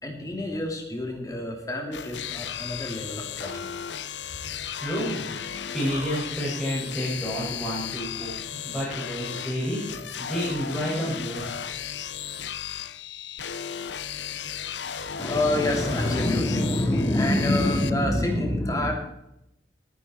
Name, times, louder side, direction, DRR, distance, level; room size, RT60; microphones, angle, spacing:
voice 1, 0.0-3.7 15.2-18.9, left 1 dB, 20° left, 2 dB, 2.7 m, -26 dB
sound 1, 1.9-17.9, left 8 dB, 85° left, 0.8 m, -35 dB
voice 2, 4.8-5.3 5.7-11.5, equal, ahead, -9 dB, 5.9 m, -30 dB
21.5 x 10.0 x 4.4 m, 0.83 s
head